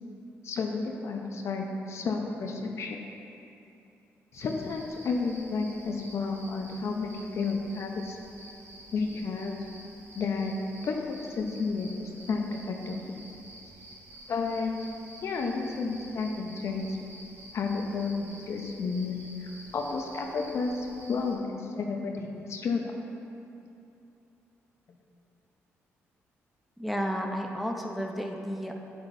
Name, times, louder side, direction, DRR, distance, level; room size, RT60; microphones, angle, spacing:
voice 1, 0.4-3.0 4.3-8.2 8.9-9.6 10.1-10.6 10.8-12.0 12.3-13.0 14.3-14.7 15.2-17.0 17.5-22.8 24.9-25.0, left 4 dB, 60° left, 2 dB, 0.8 m, -31 dB
sound 1, 4.3-21.4, right 1 dB, 55° right, 1.5 m, -50 dB
voice 2, 26.8-28.7, equal, ahead, 1 dB, 0.7 m, -32 dB
8.0 x 7.9 x 2.7 m, 2.8 s
cardioid pair, 75°, 5 cm